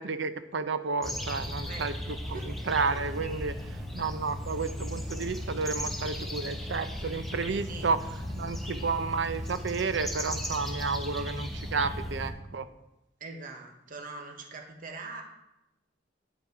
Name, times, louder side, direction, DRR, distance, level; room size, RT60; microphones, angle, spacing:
voice 1, 0.0-8.0 8.4-12.7, right 4 dB, 85° right, 12 dB, 0.6 m, -31 dB
sound 1, 1.0-12.3, left 1 dB, ahead, 1.1 m, -36 dB
Gong, 2.3-9.7, right 1 dB, 45° left, 0.8 m, -53 dB
voice 2, 13.2-15.2, right 3 dB, 50° right, 2 dB, 1.2 m, -42 dB
9.6 x 5.9 x 4.5 m, 0.89 s
head